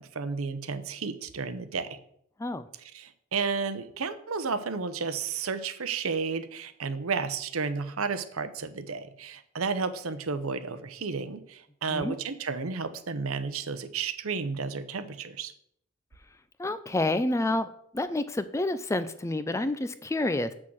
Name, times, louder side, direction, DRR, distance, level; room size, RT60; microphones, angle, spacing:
voice 1, 0.0-1.9 2.8-15.5, right 5 dB, 80° right, 11 dB, 0.8 m, -32 dB
voice 2, 16.6-17.7 17.9-20.5, left 2 dB, 15° left, 13 dB, 0.4 m, -28 dB
7.4 x 6.3 x 6.3 m, 0.69 s
head